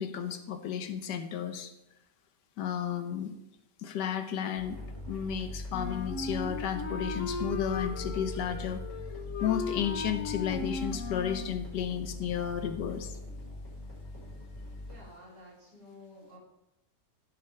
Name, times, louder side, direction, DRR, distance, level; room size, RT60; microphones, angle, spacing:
voice 1, 0.0-1.7 2.6-3.3 3.8-4.8 5.1-8.8 9.4-13.1, left 8 dB, 85° left, 8 dB, 1.5 m, -33 dB
sound 1, 4.6-15.0, left 1 dB, 15° left, 4.6 m, -41 dB
Wind instrument woodwind instrument, 5.7-11.6, left 4 dB, 55° left, 1.0 m, -37 dB
voice 2, 14.8-16.4, left 1 dB, 75° right, -4 dB, 4.1 m, -52 dB
16.0 x 7.0 x 3.3 m, 0.90 s
omnidirectional pair, 1.8 m